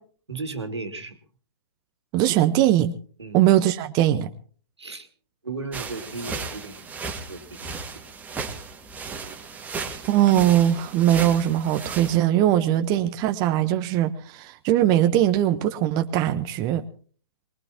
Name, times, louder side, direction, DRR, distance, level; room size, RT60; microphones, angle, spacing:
voice 1, 0.3-1.2 3.2-3.4 4.8-5.1 5.4-6.9 7.2-7.8, right 3 dB, 85° right, 2.5 m, -35 dB
voice 2, 2.1-3.0 3.3-4.3 10.1-16.8, right 12 dB, 30° right, 1.0 m, -21 dB
sound 1, 5.7-12.2, right 4 dB, 10° right, 1.9 m, -35 dB
23.5 x 21.0 x 2.9 m
figure-of-eight pair, 125°, 14 cm